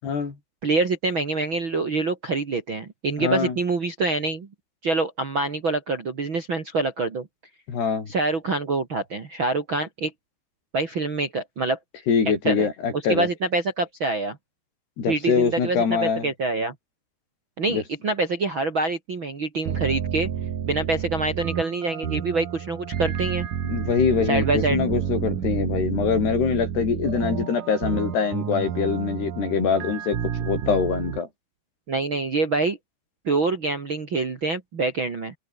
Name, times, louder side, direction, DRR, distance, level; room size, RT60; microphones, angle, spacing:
voice 1, 0.0-0.4 3.2-3.6 7.7-8.1 12.1-13.3 15.0-16.3 17.7-17.8 23.6-31.3, left 6 dB, 65° left, 7.0 m, -24 dB
voice 2, 0.6-4.5 4.8-7.3 8.1-10.1 10.7-11.8 12.4-12.7 12.9-14.4 15.1-16.7 17.6-20.3 20.6-23.4 24.3-24.8 31.9-32.8 33.2-35.4, right 3 dB, 40° right, 2.2 m, -25 dB
sound 1, 19.7-31.2, right 9 dB, 55° right, 3.5 m, -30 dB
omnidirectional pair, 5.0 m